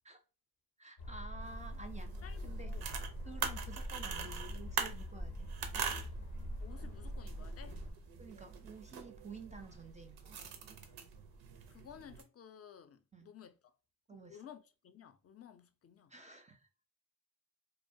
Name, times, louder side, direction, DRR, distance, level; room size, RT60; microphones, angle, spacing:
voice 1, 0.8-2.1 2.4-2.7 3.2-5.5 8.2-10.6 13.1-13.3 14.1-14.4 16.1-16.7, right 3 dB, 20° right, 0.4 m, -51 dB
sound 1, 1.0-7.9, equal, 85° left, 0.6 m, -43 dB
sound 2, 1.4-12.2, right 6 dB, 85° right, 0.5 m, -44 dB
voice 2, 2.2-2.9 6.6-7.8 11.7-13.7 14.1-16.1, left 8 dB, 40° left, 0.4 m, -55 dB
2.2 x 2.1 x 2.6 m
cardioid pair, 50°, 37 cm